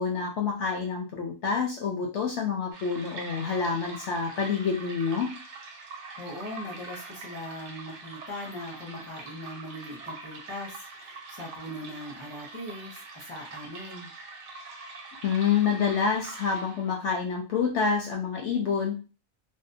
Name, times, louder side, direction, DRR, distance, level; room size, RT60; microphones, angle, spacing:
voice 1, 0.0-5.3 15.2-19.0, left 6 dB, 65° left, 0 dB, 0.7 m, -27 dB
sound 1, 2.7-17.0, right 3 dB, 65° right, 0.8 m, -44 dB
voice 2, 6.2-14.1, left 1 dB, 10° right, -3 dB, 0.5 m, -40 dB
2.6 x 2.0 x 2.6 m, 0.32 s
omnidirectional pair, 1.5 m